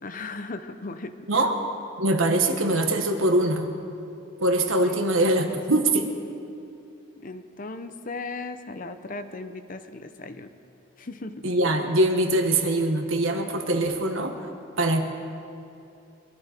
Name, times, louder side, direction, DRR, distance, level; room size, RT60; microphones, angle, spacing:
voice 1, 0.0-1.4 4.8-5.6 7.2-10.5 11.0-11.5, left 3 dB, 40° left, 9 dB, 0.7 m, -37 dB
voice 2, 2.0-3.7 4.4-6.1 11.4-14.4 14.8-15.0, right 1 dB, 85° right, 5 dB, 1.5 m, -23 dB
23.5 x 13.0 x 4.5 m, 2.6 s
head